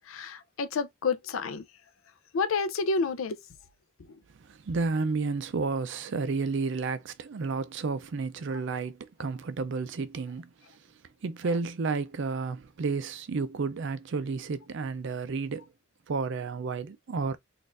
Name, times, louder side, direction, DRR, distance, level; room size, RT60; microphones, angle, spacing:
voice 1, 0.0-1.6 2.3-3.4 4.0-4.2 8.5-8.6, left 4 dB, 75° left, 0.5 m, -30 dB
voice 2, 4.5-10.5 11.2-15.6 16.1-17.4, right 4 dB, 60° right, 0.5 m, -31 dB
4.1 x 2.5 x 2.5 m
head